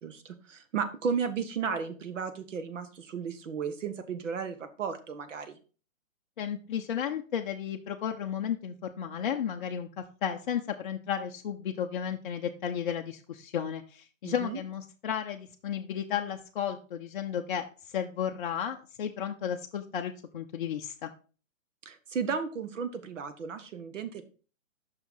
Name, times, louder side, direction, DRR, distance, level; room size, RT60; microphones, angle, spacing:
voice 1, 0.0-5.6 14.2-14.6 21.8-24.2, right 6 dB, 65° right, 9 dB, 1.2 m, -34 dB
voice 2, 6.4-17.7 17.9-21.1, left 8 dB, 40° left, 3 dB, 0.5 m, -33 dB
5.8 x 5.7 x 3.8 m, 0.37 s
hypercardioid pair, 135°, 40 cm